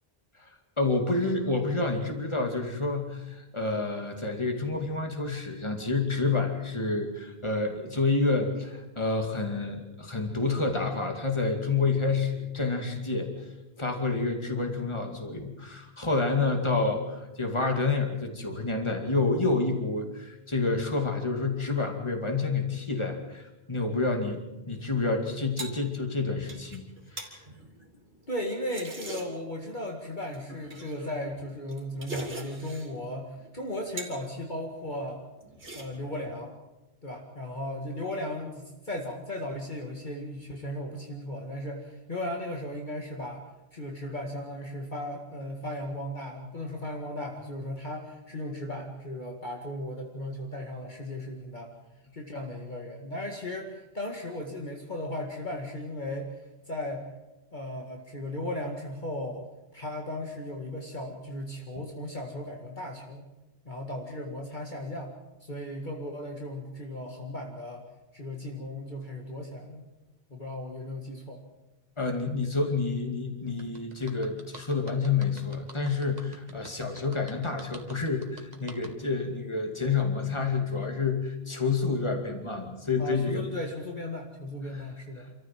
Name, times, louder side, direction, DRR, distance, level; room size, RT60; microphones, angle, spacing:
voice 1, 0.8-13.5 13.8-24.4 24.7-26.8 27.1-27.3 72.0-83.5 84.7-84.9, left 3 dB, 25° left, 3 dB, 2.5 m, -29 dB
sound 1, 25.1-29.6 30.3-33.0 33.3-34.3 34.6-35.1 35.4-36.2, right 2 dB, 65° right, 3.4 m, -43 dB
voice 2, 28.3-35.2 35.7-36.6 37.0-43.5 43.7-51.7 52.1-56.3 56.7-57.0 57.5-59.5 59.7-63.2 63.7-65.1 65.4-67.8 68.1-69.9 70.3-71.4 83.0-85.3, left 1 dB, 45° left, 1 dB, 2.2 m, -36 dB
sound 2, 73.6-78.9, right 2 dB, 40° right, 2.1 m, -47 dB
26.5 x 14.0 x 7.6 m, 1.0 s
omnidirectional pair, 1.1 m